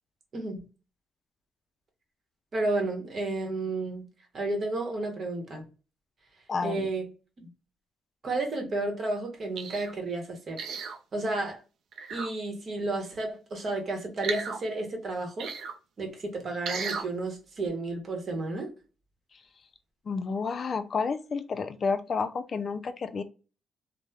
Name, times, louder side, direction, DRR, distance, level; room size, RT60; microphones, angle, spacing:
voice 1, 2.5-4.1 4.3-5.7 6.6-7.1 7.4-7.5 8.2-10.6 11.1-11.6 12.1-15.5 16.0-18.7, right 2 dB, 45° right, 0.9 m, -32 dB
voice 2, 6.5-6.9 20.1-23.2, left 5 dB, 45° left, 0.4 m, -30 dB
sound 1, 9.6-9.9 10.6-11.0 11.9-12.3 14.2-14.6 15.4-15.7 16.7-17.1 17.7-17.8, right 5 dB, 75° right, 0.4 m, -34 dB
3.0 x 2.0 x 2.3 m
cardioid pair, 90°, 0 cm